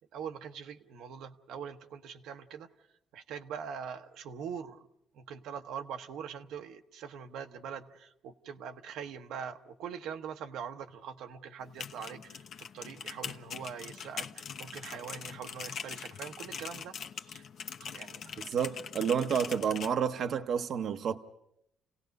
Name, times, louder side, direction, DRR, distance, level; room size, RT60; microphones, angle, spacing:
voice 1, 0.1-2.7 3.1-4.9 5.1-17.5 17.8-18.4 18.7-18.8, right 7 dB, 85° right, 6 dB, 1.0 m, -43 dB
sound 1, 11.6-19.9, left 7 dB, 55° left, 0.9 m, -43 dB
voice 2, 18.5-21.2, right 7 dB, 55° right, 6 dB, 0.8 m, -30 dB
29.5 x 17.5 x 5.3 m, 0.79 s
cardioid pair, 135°, 0 cm